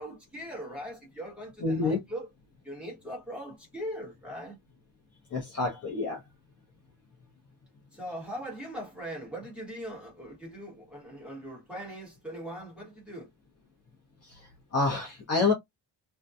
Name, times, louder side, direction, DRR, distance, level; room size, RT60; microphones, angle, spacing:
voice 1, 0.0-2.3 2.6-4.6 7.9-13.3, equal, ahead, 1.0 m, -40 dB
voice 2, 1.6-2.0 5.3-6.2 14.3-14.4 14.7-15.5, left 3 dB, 35° left, 0.7 m, -27 dB
2.6 x 2.1 x 2.3 m
cardioid pair, 175°, 46 cm